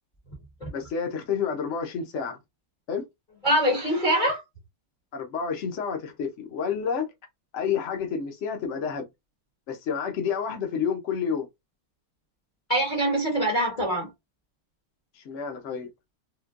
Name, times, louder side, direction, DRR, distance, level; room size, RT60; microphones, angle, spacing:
voice 1, 0.7-2.4 2.9-3.0 5.1-7.0 7.5-9.0 9.7-11.5 15.2-15.9, left 6 dB, 85° left, 0.6 m, -29 dB
voice 2, 3.4-4.4 12.7-14.1, right 1 dB, 25° left, 1.2 m, -23 dB
4.3 x 2.2 x 2.4 m
omnidirectional pair, 2.4 m